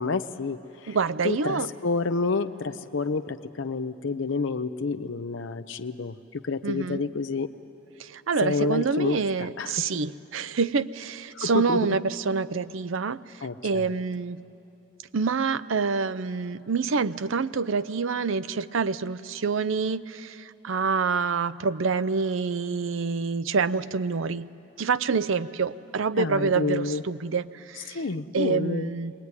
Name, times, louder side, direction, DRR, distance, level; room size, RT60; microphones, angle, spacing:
voice 1, 0.0-1.0 1.2-7.5 8.4-9.8 11.3-11.8 13.4-13.9 26.1-27.0 27.9-28.9, left 4 dB, 65° left, 8 dB, 0.6 m, -29 dB
voice 2, 0.9-1.7 6.6-7.0 8.0-13.2 13.6-14.4 15.1-24.5 24.8-28.0 28.3-29.1, right 5 dB, 70° right, 15 dB, 0.5 m, -27 dB
23.0 x 19.5 x 9.6 m, 2.9 s
head